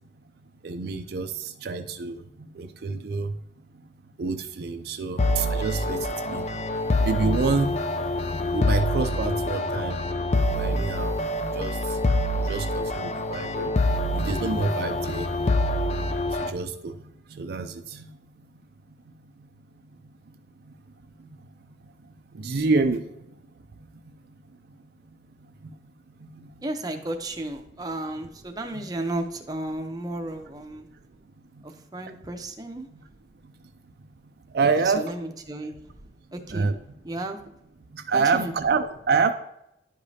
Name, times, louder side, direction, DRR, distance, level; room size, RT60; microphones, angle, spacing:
voice 1, 0.6-2.2 2.5-3.3 4.2-6.5 7.0-7.7 8.5-10.0 10.5-11.2 11.5-11.8 12.4-13.7 14.1-15.3 16.3-17.0 17.3-18.1 22.3-23.0 25.6-25.7 26.2-26.5 28.7-28.8 34.5-35.1 36.5-36.7 37.9-39.3, right 4 dB, 60° right, 7 dB, 0.4 m, -27 dB
sound 1, 5.2-16.5, left 1 dB, 35° left, 0.4 m, -26 dB
voice 2, 26.6-30.9 31.6-32.9 34.8-35.8 36.3-36.7 37.0-37.4 38.1-38.5, right 1 dB, 20° right, 4 dB, 0.7 m, -33 dB
10.5 x 5.0 x 2.7 m, 0.82 s
head